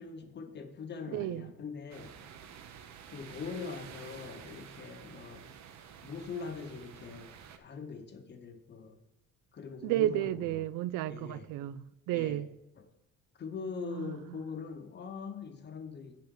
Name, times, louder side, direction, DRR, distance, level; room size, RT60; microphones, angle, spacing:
voice 1, 0.0-2.1 3.1-5.5 6.0-9.0 9.5-10.6 11.1-11.5 12.1-12.4 13.4-16.2, left 5 dB, 35° left, 0.8 m, -42 dB
voice 2, 1.1-1.5 9.8-12.5 13.8-14.4, right 13 dB, 85° right, 0.5 m, -33 dB
sound 1, 1.9-7.6, right 8 dB, 60° right, 0.9 m, -50 dB
7.3 x 5.8 x 7.0 m
cardioid pair, 155°, 31 cm